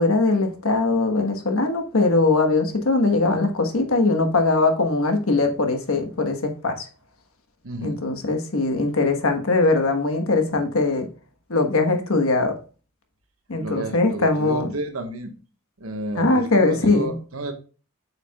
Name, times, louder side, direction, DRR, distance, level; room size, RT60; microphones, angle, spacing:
voice 1, 0.0-6.8 7.8-11.1 11.5-12.5 13.5-14.7 16.1-17.2, left 3 dB, 80° left, 1.3 m, -21 dB
voice 2, 7.6-8.0 13.6-15.3 15.8-17.5, right 1 dB, 85° right, 1.3 m, -31 dB
7.6 x 5.8 x 2.3 m
head